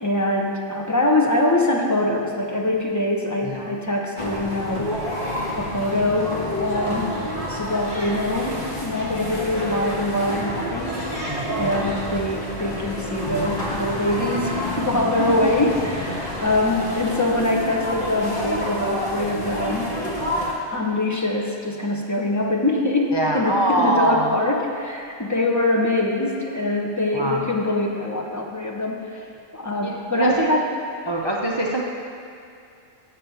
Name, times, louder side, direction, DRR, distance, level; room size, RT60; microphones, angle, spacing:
voice 1, 0.0-5.0 5.5-7.1 7.4-11.0 11.5-19.9 20.7-29.2 29.5-30.6, left 2 dB, 20° left, -1 dB, 0.6 m, -23 dB
sound 1, 4.2-20.5, left 1 dB, 45° left, 1.7 m, -29 dB
voice 2, 11.3-11.7 15.3-15.7 23.1-24.4 27.1-27.4 29.8-30.5 31.1-31.8, right 2 dB, 35° right, -2 dB, 0.4 m, -24 dB
7.6 x 5.6 x 6.9 m, 2.5 s
omnidirectional pair, 1.3 m